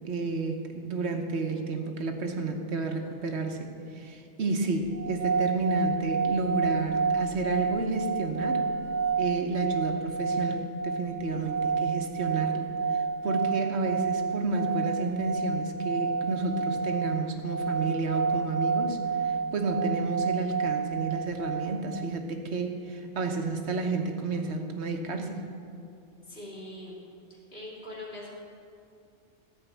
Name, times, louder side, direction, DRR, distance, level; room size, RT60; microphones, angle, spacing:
voice 1, 0.0-8.7 9.2-25.4, right 3 dB, 75° right, 4 dB, 1.3 m, -31 dB
sound 1, 4.9-22.1, right 5 dB, 55° right, 0.6 m, -30 dB
voice 2, 26.3-27.0 27.3-28.3, left 1 dB, 60° left, -5 dB, 2.9 m, -42 dB
13.5 x 5.3 x 8.2 m, 2.5 s
omnidirectional pair, 1.1 m